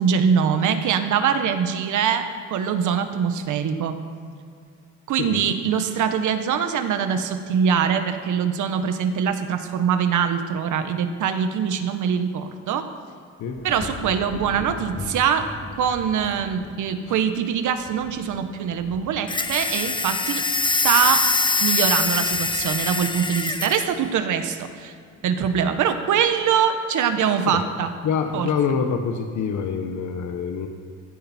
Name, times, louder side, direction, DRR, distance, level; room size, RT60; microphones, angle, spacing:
voice 1, 0.0-4.0 5.1-12.9 13.6-15.5 15.8-21.2 21.6-24.9 25.2-27.9 28.3-28.5, right 7 dB, 80° right, 7 dB, 1.6 m, -23 dB
sound 1, 13.5-24.8 25.3-25.7, left 2 dB, 45° left, 2.7 m, -41 dB
sound 2, 19.3-23.9, left 3 dB, 15° left, 0.9 m, -23 dB
voice 2, 28.0-30.7, left 6 dB, 75° left, 5 dB, 1.4 m, -25 dB
18.0 x 15.0 x 4.6 m, 2.3 s
cardioid pair, 90°, 30 cm